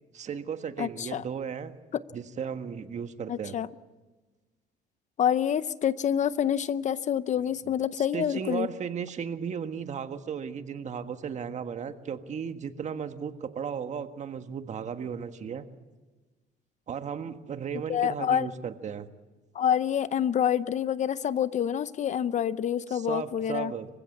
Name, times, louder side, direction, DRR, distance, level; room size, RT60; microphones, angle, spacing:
voice 1, 0.1-1.8 2.1-3.6 8.0-15.6 16.9-19.1 22.9-23.9, right 7 dB, 45° right, 8 dB, 1.5 m, -35 dB
voice 2, 0.8-1.2 1.9-2.0 3.3-3.7 5.2-8.7 17.9-18.5 19.5-23.7, left 9 dB, 45° left, 16 dB, 0.7 m, -27 dB
26.0 x 16.0 x 8.6 m, 1.3 s
cardioid pair, 110°, 17 cm